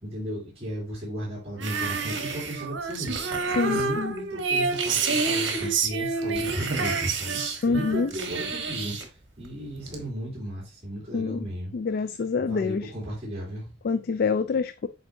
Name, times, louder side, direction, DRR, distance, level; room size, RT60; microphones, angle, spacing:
voice 1, 0.0-7.4 7.7-11.7 12.4-13.7, equal, 30° right, 3.2 m, -35 dB
sound 1, 1.6-3.9 4.4-7.6 8.1-9.0 9.4-10.1, right 5 dB, 65° right, 1.4 m, -32 dB
Female singing, 1.6-8.9, right 4 dB, 85° right, 0.9 m, -29 dB
voice 2, 3.6-4.1 7.6-8.1 11.1-11.5 11.7-12.9 13.8-14.9, left 4 dB, 50° left, 0.3 m, -26 dB
7.7 x 4.6 x 2.7 m
head